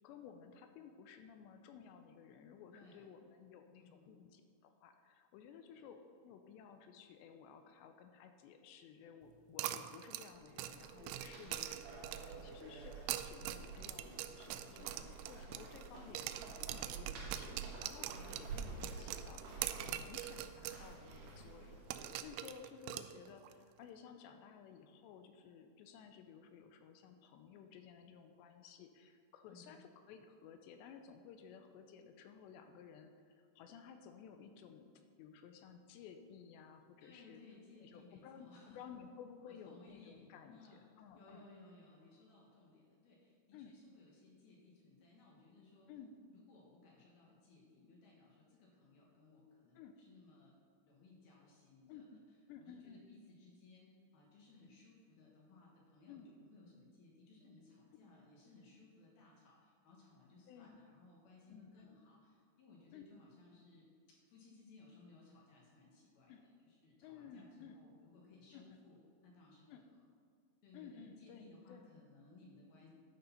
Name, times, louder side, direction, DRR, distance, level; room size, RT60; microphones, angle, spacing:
voice 1, 0.0-37.4 37.8-41.4 43.5-43.8 45.9-46.2 49.7-50.0 51.9-52.2 52.5-53.1 56.1-56.3 60.5-60.8 61.5-62.0 62.9-63.0 66.3-66.4 67.0-67.8 68.5-68.8 69.7-69.9 70.7-71.9, left 7 dB, 80° left, 7 dB, 2.7 m, -56 dB
voice 2, 2.7-3.1 3.8-4.2 5.7-5.9 11.4-11.8 14.7-15.2 29.5-29.8 37.0-38.8 39.6-45.9 46.3-50.5 50.8-52.1 52.6-66.4 66.6-69.8 70.6-72.9, left 3 dB, 65° left, -3 dB, 3.1 m, -62 dB
sound 1, 9.6-12.4 12.9-15.9 16.2-20.8 21.1-21.2 21.9-23.5, right 13 dB, 90° right, 2.9 m, -44 dB
sound 2, 10.3-22.5, right 4 dB, 70° right, 3.5 m, -50 dB
11.5 x 6.6 x 5.7 m, 2.2 s
omnidirectional pair, 5.3 m